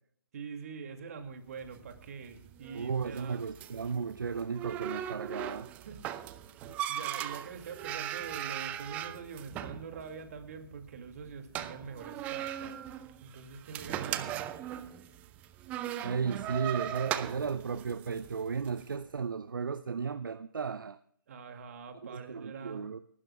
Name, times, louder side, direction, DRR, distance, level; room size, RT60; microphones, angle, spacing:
voice 1, 0.3-3.5 5.8-6.2 6.6-12.8 13.2-14.4 21.3-22.9, right 5 dB, 40° right, 6 dB, 2.3 m, -44 dB
sound 1, 1.6-18.8, right 11 dB, 10° right, 0.4 m, -39 dB
voice 2, 2.7-5.7 16.0-21.0 22.1-23.0, right 6 dB, 65° right, 12 dB, 0.6 m, -34 dB
28.5 x 12.5 x 2.3 m, 0.64 s
figure-of-eight pair, 140°, 12 cm